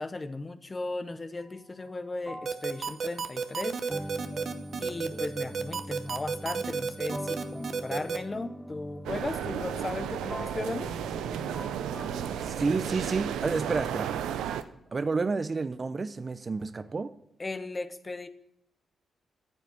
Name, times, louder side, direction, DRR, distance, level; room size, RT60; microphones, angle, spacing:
voice 1, 0.0-3.8 4.8-10.9 17.4-18.3, left 2 dB, 30° left, 1.0 m, -36 dB
sound 1, 1.4-1.6 2.2-12.5, equal, ahead, 0.7 m, -42 dB
sound 2, 2.5-8.2, right 5 dB, 60° right, 1.0 m, -31 dB
sound 3, 9.0-14.6, right 9 dB, 85° right, 0.6 m, -33 dB
voice 2, 12.4-14.1 14.9-17.2, right 4 dB, 40° right, 0.6 m, -30 dB
10.0 x 7.2 x 8.0 m
supercardioid pair, 55°, 0 cm